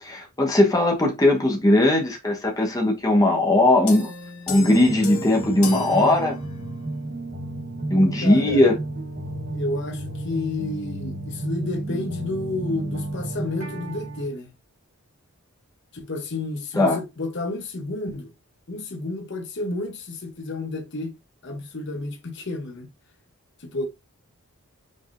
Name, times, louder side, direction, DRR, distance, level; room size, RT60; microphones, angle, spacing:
voice 1, 0.0-4.1 4.5-6.3 7.9-8.7 16.8-17.0, left 1 dB, 15° left, 1.0 m, -19 dB
sound 1, 3.9-6.9, left 5 dB, 70° left, 1.1 m, -35 dB
sound 2, 4.5-14.2, right 2 dB, 60° right, 2.9 m, -32 dB
voice 2, 8.2-8.6 9.5-14.5 15.9-18.3 18.7-21.1 21.4-22.9 23.6-23.9, left 2 dB, 55° left, 0.8 m, -31 dB
5.4 x 3.5 x 2.5 m
head